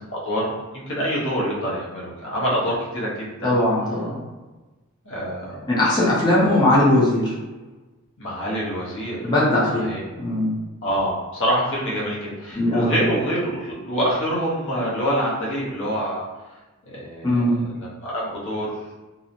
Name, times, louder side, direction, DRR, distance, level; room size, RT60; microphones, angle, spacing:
voice 1, 0.1-3.6 5.0-5.6 6.4-6.5 8.2-9.2 9.7-10.0 10.8-16.3 16.9-17.3 17.8-18.7, equal, 60° left, -5 dB, 0.8 m, -26 dB
voice 2, 3.4-4.2 5.7-7.3 9.2-9.9 10.2-10.5 12.5-13.0 17.2-17.6, left 1 dB, 20° left, -7 dB, 0.7 m, -19 dB
2.8 x 2.0 x 2.5 m, 1.2 s
head